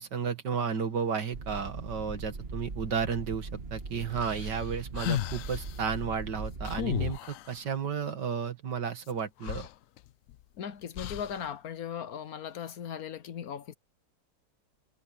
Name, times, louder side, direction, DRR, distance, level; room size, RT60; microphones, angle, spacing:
voice 1, 0.0-9.7, right 6 dB, 70° right, 2.5 m, -33 dB
sound 1, 1.3-7.2, right 3 dB, 35° right, 1.7 m, -40 dB
sound 2, 4.2-5.8 6.6-7.6 9.1-9.2 9.4-10.4 10.9-11.5, left 13 dB, 80° left, 0.7 m, -35 dB
voice 2, 10.6-13.7, left 8 dB, 60° left, 1.1 m, -38 dB
omnidirectional pair, 1.9 m